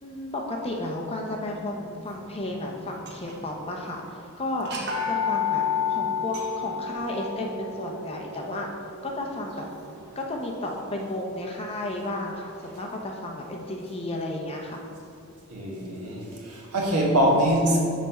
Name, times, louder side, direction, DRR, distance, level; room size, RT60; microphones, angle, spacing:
voice 1, 0.0-4.7 5.1-5.6 5.9-8.7 9.0-9.7 10.2-14.8, left 1 dB, 25° left, 0 dB, 0.7 m, -33 dB
sound 1, 3.0-3.6 3.9-4.0 4.6-10.5, left 6 dB, 50° right, 0.9 m, -31 dB
voice 2, 15.5-17.8, right 1 dB, 90° right, -3 dB, 1.4 m, -23 dB
5.9 x 4.2 x 5.6 m, 2.5 s
head